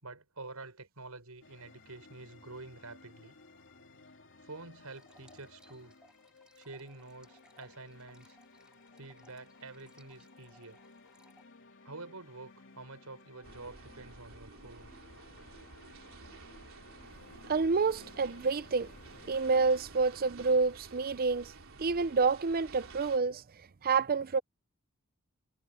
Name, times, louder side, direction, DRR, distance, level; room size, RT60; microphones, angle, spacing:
voice 1, 0.0-3.3 4.4-6.0 6.6-8.4 9.0-10.8 11.8-14.9, right 3 dB, 80° right, 5.7 m, -48 dB
sound 1, 1.4-19.8, left 3 dB, 60° left, 3.0 m, -58 dB
sound 2, 4.9-11.4, right 1 dB, 5° right, 4.7 m, -65 dB
sound 3, 13.4-23.2, right 3 dB, 65° right, 3.9 m, -52 dB
voice 2, 17.5-18.9 19.3-21.5 21.8-23.4 23.8-24.4, right 4 dB, 45° right, 0.6 m, -28 dB
head